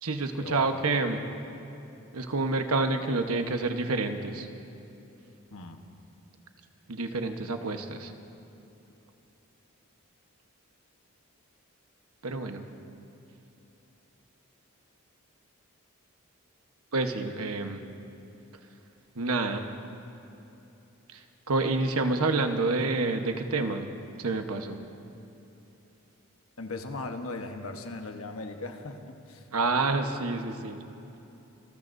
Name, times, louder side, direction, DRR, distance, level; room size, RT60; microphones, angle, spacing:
voice 1, 0.0-1.2 2.1-4.5 6.9-8.1 12.2-12.7 16.9-17.8 19.1-19.7 21.1-23.9 24.2-24.8 29.5-30.8, right 3 dB, 85° right, 6 dB, 1.2 m, -28 dB
voice 2, 5.5-5.8 26.6-29.4, left 2 dB, 75° left, 5 dB, 1.2 m, -38 dB
27.0 x 19.0 x 2.7 m, 2.9 s
head